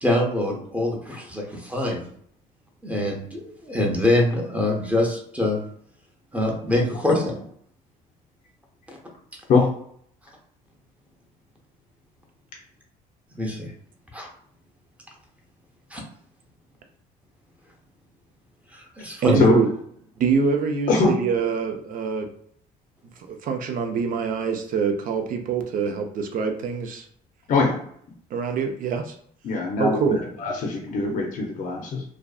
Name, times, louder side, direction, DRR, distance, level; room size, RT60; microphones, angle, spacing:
voice 1, 0.0-2.0 2.8-5.6 6.3-7.3 13.3-13.7 14.1-14.3 15.9-16.0 18.7-19.5, left 1 dB, 10° right, 0 dB, 0.7 m, -24 dB
voice 2, 19.2-19.7 20.2-22.3 23.3-27.0 28.3-29.1 29.8-30.2, right 6 dB, 55° right, 5 dB, 0.5 m, -24 dB
voice 3, 27.5-27.8 29.4-30.0 30.4-32.0, left 4 dB, 50° left, 0 dB, 0.6 m, -21 dB
2.5 x 2.2 x 2.3 m, 0.64 s
cardioid pair, 110°, 17 cm